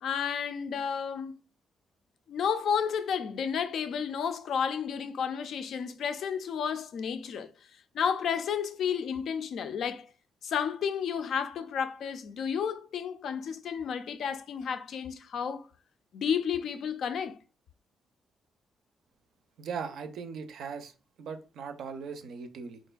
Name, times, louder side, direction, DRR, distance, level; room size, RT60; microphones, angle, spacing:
voice 1, 0.0-1.3 2.3-7.5 7.9-10.1 10.4-15.7 16.1-17.4, left 7 dB, 70° left, 0.3 m, -31 dB
voice 2, 19.6-20.9 21.2-22.8, right 6 dB, 75° right, 0.5 m, -39 dB
4.1 x 2.5 x 2.2 m
cardioid pair, 115°, 0 cm